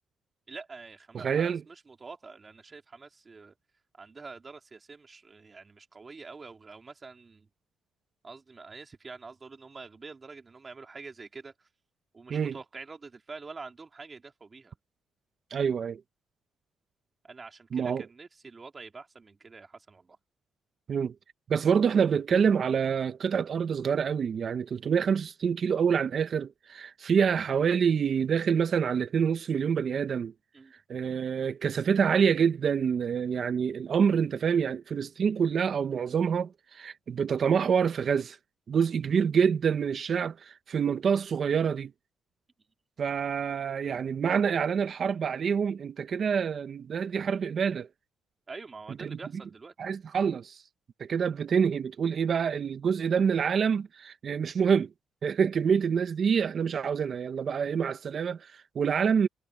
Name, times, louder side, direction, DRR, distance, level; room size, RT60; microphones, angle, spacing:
voice 1, 0.5-3.5 4.0-7.5 8.2-11.7 12.1-14.7 17.2-20.2 30.5-30.7 48.5-49.7, right 4 dB, 30° right, 3.5 m, -46 dB
voice 2, 1.1-1.6 12.3-12.6 15.5-16.0 17.7-18.0 20.9-21.1 21.5-30.3 30.9-38.4 38.7-41.9 43.0-47.9 49.0-49.2 49.8-50.6 51.0-54.9 55.2-59.3, right 7 dB, 50° right, 1.2 m, -26 dB
cardioid pair, 90°, 0 cm